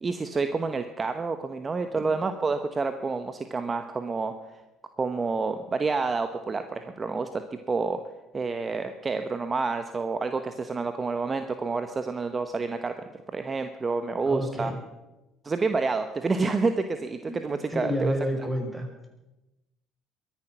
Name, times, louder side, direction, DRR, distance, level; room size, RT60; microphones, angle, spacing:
voice 1, 0.0-4.6 5.0-8.0 8.3-12.9 13.3-14.7 15.4-18.1, right 4 dB, 30° right, 9 dB, 1.1 m, -29 dB
voice 2, 14.3-14.8 17.3-17.4 17.7-19.1, equal, ahead, 2 dB, 5.4 m, -30 dB
22.0 x 10.5 x 6.1 m, 1.0 s
hypercardioid pair, 60°, 0 cm